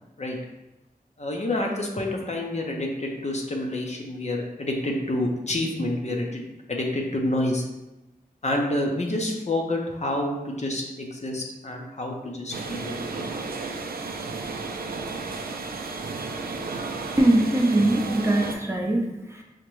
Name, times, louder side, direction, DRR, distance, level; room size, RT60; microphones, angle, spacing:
voice 1, 1.2-6.4 6.7-7.7 8.4-13.2, left 1 dB, 45° left, 0 dB, 0.6 m, -28 dB
sound 1, 12.5-18.6, right 3 dB, 75° right, 0.4 m, -33 dB
voice 2, 17.2-19.4, right 1 dB, 15° right, -1 dB, 0.6 m, -22 dB
4.9 x 2.1 x 3.0 m, 0.99 s
wide cardioid pair, 60°, 16 cm